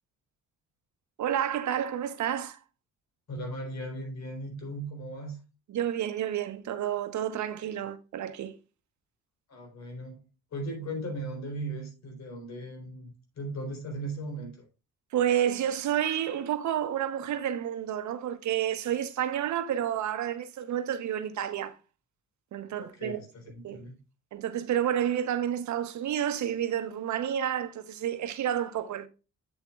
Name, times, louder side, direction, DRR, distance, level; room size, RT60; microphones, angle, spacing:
voice 1, 1.2-2.6 5.7-8.5 15.1-21.8 22.5-23.2 23.6-23.8 24.3-29.1, right 10 dB, 70° right, 1.0 m, -30 dB
voice 2, 3.3-5.4 9.5-14.6 22.8-24.0, right 1 dB, 65° left, 3.9 m, -38 dB
8.1 x 7.9 x 2.4 m
cardioid pair, 90°, 30 cm